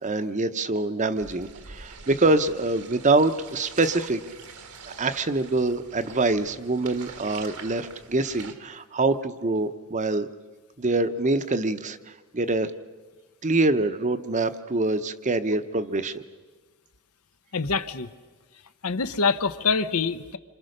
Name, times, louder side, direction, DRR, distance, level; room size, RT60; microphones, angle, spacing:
voice 1, 0.0-4.2 4.9-10.3 10.8-12.7 13.4-16.2, right 2 dB, 35° right, 10 dB, 0.9 m, -25 dB
sound 1, 1.1-8.5, right 5 dB, 80° right, 1.8 m, -44 dB
voice 2, 17.5-18.1 18.8-20.4, left 4 dB, 75° left, 11 dB, 1.0 m, -25 dB
27.5 x 26.5 x 6.6 m, 1.4 s
head